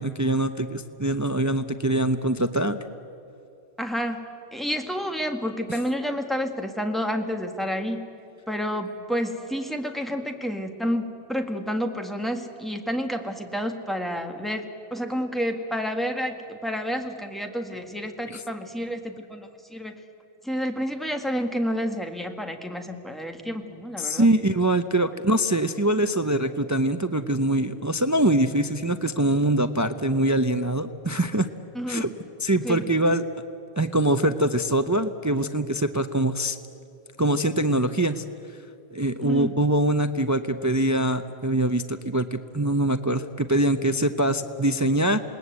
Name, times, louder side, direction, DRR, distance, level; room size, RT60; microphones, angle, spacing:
voice 1, 0.0-2.8 5.7-5.8 18.3-18.4 24.0-31.5 31.9-32.1 32.4-33.2 33.8-36.6 37.2-38.2 38.9-45.2, right 1 dB, 20° right, 9 dB, 0.6 m, -23 dB
voice 2, 3.8-4.3 4.5-8.1 8.5-20.0 20.4-24.3 31.7-32.1 32.6-32.9 39.2-39.5, equal, ahead, 4 dB, 1.8 m, -29 dB
28.0 x 19.5 x 8.3 m, 2.7 s
omnidirectional pair, 1.1 m